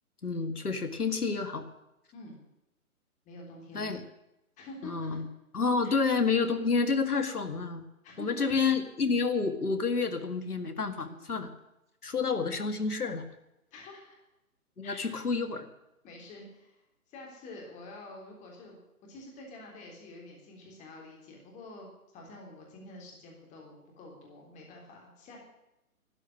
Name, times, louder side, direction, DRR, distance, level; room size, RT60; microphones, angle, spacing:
voice 1, 0.2-1.7 3.7-4.0 4.8-5.3 5.5-7.9 8.2-11.5 12.0-13.2 14.8-15.7, left 4 dB, 80° left, 10 dB, 2.1 m, -29 dB
voice 2, 3.3-4.0 4.6-5.0 5.8-6.0 8.0-8.5 11.0-11.2 13.7-14.2 14.8-15.2 16.0-16.8 17.1-18.8 19.1-21.9 22.1-25.4, left 2 dB, 15° left, 0 dB, 3.6 m, -47 dB
13.0 x 9.8 x 9.9 m, 0.89 s
figure-of-eight pair, 140°, 45 cm